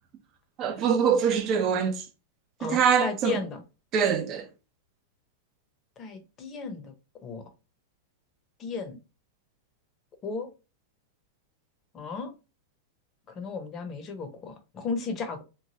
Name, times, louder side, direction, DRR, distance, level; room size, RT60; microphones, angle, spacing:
voice 1, 0.6-2.0 2.6-3.4 3.9-4.5, right 7 dB, 35° right, 0.8 m, -24 dB
voice 2, 2.6-3.6 6.0-6.9 7.2-7.4 8.6-9.0 10.2-10.5 11.9-12.3 13.3-15.4, left 4 dB, 30° left, 0.8 m, -35 dB
3.1 x 2.3 x 2.7 m
hypercardioid pair, 135°, 0 cm